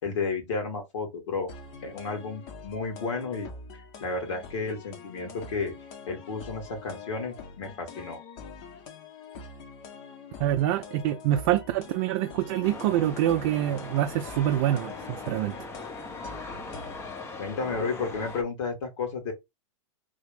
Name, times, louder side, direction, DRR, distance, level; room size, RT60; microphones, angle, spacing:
voice 1, 0.0-1.5 1.8-3.5 4.0-5.7 6.1-8.2 17.4-19.3, left 4 dB, 65° left, 1.9 m, -32 dB
sound 1, 1.5-17.2, left 5 dB, 45° left, 1.1 m, -45 dB
voice 2, 10.4-15.6, right 13 dB, 50° right, 0.4 m, -26 dB
sound 2, 12.6-18.4, left 2 dB, 15° left, 0.7 m, -40 dB
3.4 x 2.5 x 3.4 m
hypercardioid pair, 120°, 17 cm